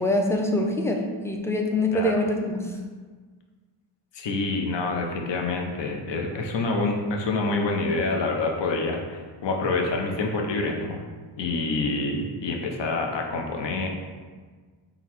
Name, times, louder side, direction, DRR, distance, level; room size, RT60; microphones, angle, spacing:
voice 1, 0.0-2.8, left 1 dB, 5° left, 1 dB, 0.5 m, -24 dB
voice 2, 4.1-11.0 11.4-13.9, left 3 dB, 60° left, 1 dB, 0.8 m, -27 dB
3.9 x 2.3 x 4.4 m, 1.5 s
supercardioid pair, 50°, 49 cm